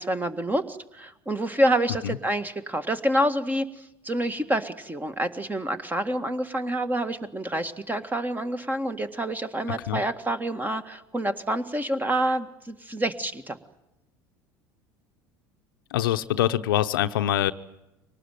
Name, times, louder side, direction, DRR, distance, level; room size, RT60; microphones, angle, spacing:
voice 1, 0.0-3.7 4.0-13.6, right 1 dB, 15° right, 1.8 m, -27 dB
voice 2, 15.9-17.5, left 12 dB, 85° left, 0.8 m, -24 dB
23.5 x 19.0 x 9.2 m
hypercardioid pair, 80°, 11 cm